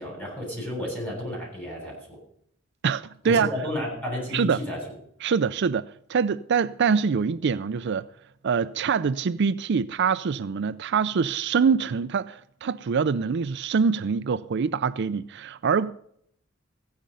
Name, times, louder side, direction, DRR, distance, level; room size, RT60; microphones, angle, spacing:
voice 1, 0.0-2.2 3.2-4.8, left 1 dB, 10° left, 7.4 m, -32 dB
voice 2, 2.8-3.5 4.3-4.6 5.2-8.1 8.4-15.9, right 6 dB, 60° right, 0.4 m, -24 dB
15.5 x 10.5 x 5.5 m
head